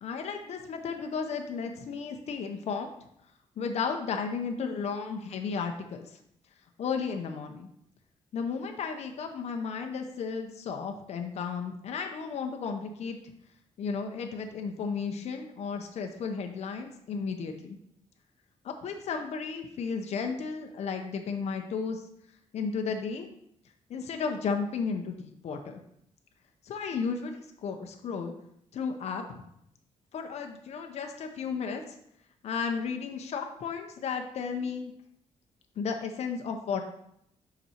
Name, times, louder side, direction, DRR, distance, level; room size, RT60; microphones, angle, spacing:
voice 1, 0.0-2.9 3.6-6.1 6.8-7.7 8.3-13.2 13.8-17.8 18.6-22.0 22.5-23.3 23.9-25.8 26.7-28.3 28.7-29.4 30.1-31.8 32.4-34.9 35.8-36.8, left 5 dB, 65° left, 4 dB, 0.7 m, -34 dB
5.6 x 5.1 x 4.3 m, 0.74 s
cardioid pair, 110°, 12 cm